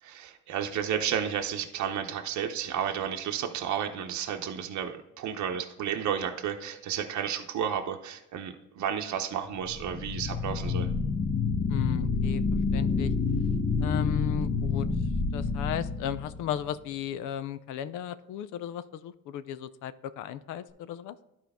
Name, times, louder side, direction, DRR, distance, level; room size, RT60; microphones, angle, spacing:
voice 1, 0.0-10.9, right 8 dB, 70° right, 4 dB, 0.8 m, -32 dB
sound 1, 9.6-16.6, left 4 dB, 40° left, 1.0 m, -28 dB
voice 2, 11.7-12.4 12.7-13.1 13.8-14.9 15.3-21.2, left 9 dB, 90° left, 14 dB, 0.5 m, -35 dB
11.5 x 4.5 x 3.5 m, 0.91 s
cardioid pair, 90°, 30 cm